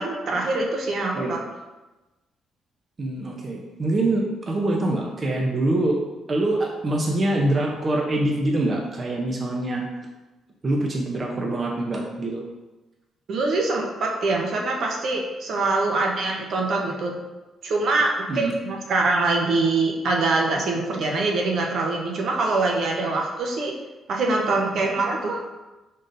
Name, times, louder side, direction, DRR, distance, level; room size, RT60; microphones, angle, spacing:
voice 1, 0.0-1.4 13.3-17.1 17.6-23.7 24.1-25.4, right 3 dB, 65° right, 0 dB, 0.8 m, -24 dB
voice 2, 3.0-6.0 6.3-9.8 10.6-12.4 18.3-18.5, right 2 dB, 35° right, 0 dB, 0.7 m, -24 dB
5.4 x 3.8 x 2.6 m, 1.1 s
cardioid pair, 90°, 0 cm